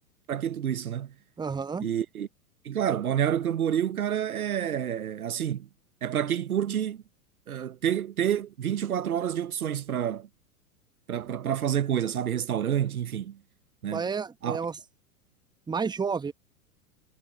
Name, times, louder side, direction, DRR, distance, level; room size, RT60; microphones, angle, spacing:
voice 1, 0.3-1.1 1.8-2.3 2.6-5.7 6.0-7.0 7.5-10.3 11.1-13.4 13.8-14.0 14.4-14.6, right 9 dB, 75° right, 1.1 m, -28 dB
voice 2, 1.4-1.9 13.9-14.8 15.7-16.3, right 5 dB, 10° right, 1.2 m, -30 dB
figure-of-eight pair, 95°, 44 cm